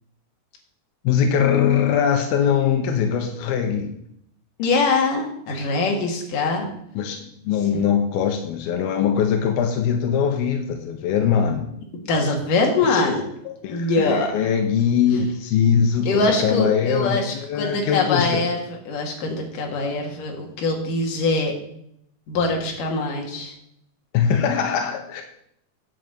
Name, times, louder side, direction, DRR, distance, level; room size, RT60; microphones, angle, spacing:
voice 1, 1.0-3.9 7.0-7.2 7.4-11.7 13.5-18.4 24.1-25.2, left 7 dB, 90° left, 5 dB, 2.9 m, -21 dB
voice 2, 4.6-6.7 7.7-7.8 12.1-13.2 13.7-14.3 16.1-21.5 22.3-23.5, left 3 dB, 65° left, 1 dB, 3.5 m, -23 dB
10.0 x 5.7 x 7.8 m, 0.73 s
omnidirectional pair, 4.2 m